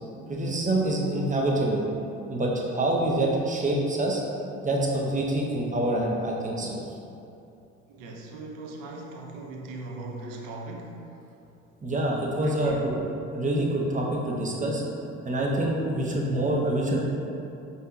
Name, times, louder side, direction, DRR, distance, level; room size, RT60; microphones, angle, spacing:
voice 1, 0.3-1.9 2.3-4.2 4.6-6.8 11.8-13.0 13.3-14.8 15.2-17.2, right 1 dB, 20° right, -2 dB, 0.7 m, -26 dB
voice 2, 7.9-11.2 12.4-12.9, right 2 dB, 65° right, 0 dB, 0.7 m, -39 dB
5.3 x 2.8 x 2.3 m, 2.8 s
hypercardioid pair, 60°, 36 cm